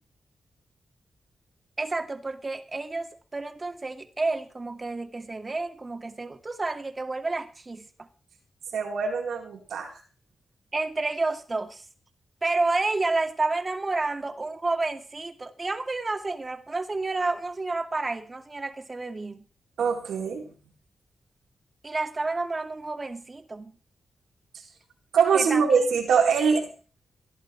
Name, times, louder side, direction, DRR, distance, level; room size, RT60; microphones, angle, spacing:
voice 1, 1.8-8.1 10.7-11.8 12.4-19.4 21.8-23.7 25.3-25.9, right 3 dB, 40° right, 2.3 m, -30 dB
voice 2, 8.7-9.9 19.8-20.5 25.1-26.7, right 6 dB, 85° right, 4.0 m, -23 dB
16.5 x 11.0 x 4.7 m
supercardioid pair, 40°, 0 cm